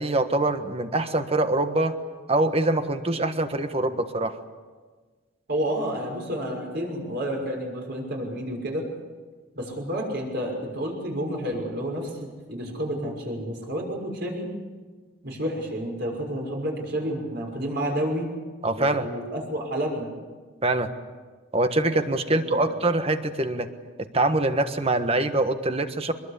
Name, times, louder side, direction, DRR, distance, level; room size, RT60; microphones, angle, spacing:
voice 1, 0.0-1.9 2.3-4.4 18.6-19.1 20.6-20.9 21.5-23.7 24.1-26.1, right 2 dB, 30° right, 8 dB, 1.5 m, -24 dB
voice 2, 5.5-8.9 9.5-14.5 15.2-18.3 18.8-20.1 22.3-22.8, equal, 55° right, 0 dB, 6.1 m, -30 dB
24.0 x 22.0 x 8.4 m, 1.4 s
head